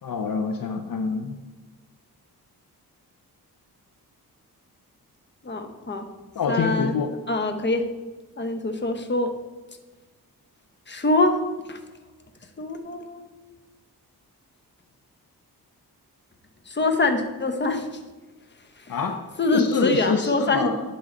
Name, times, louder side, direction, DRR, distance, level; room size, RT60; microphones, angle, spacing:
voice 1, 0.0-1.4 6.4-7.1 18.9-19.2 19.5-20.8, left 5 dB, 60° left, 5 dB, 0.7 m, -26 dB
voice 2, 5.4-6.0 6.5-7.0 7.3-7.8 8.4-9.3 10.9-11.4 11.7-11.8 12.6-13.3 16.7-17.9 18.8-18.9 19.4-20.7, left 2 dB, 30° left, 6 dB, 1.0 m, -24 dB
11.5 x 4.8 x 3.9 m, 1.2 s
cardioid pair, 75°, 38 cm